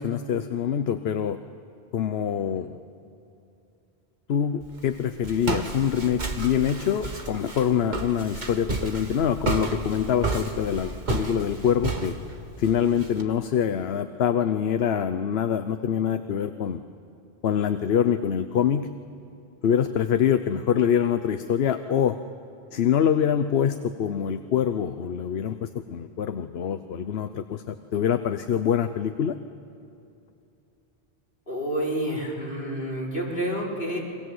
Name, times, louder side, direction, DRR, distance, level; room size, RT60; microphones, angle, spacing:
voice 1, 0.0-1.4 1.9-2.8 4.3-12.1 12.6-16.8 17.4-18.9 19.6-22.2 22.7-29.4, left 8 dB, 75° left, 9 dB, 1.0 m, -25 dB
Walk footsteps, 4.6-13.2, right 3 dB, 45° right, 1.8 m, -32 dB
voice 2, 31.5-34.0, right 1 dB, 60° left, -5 dB, 5.4 m, -29 dB
28.0 x 24.0 x 7.9 m, 2.7 s
omnidirectional pair, 1.0 m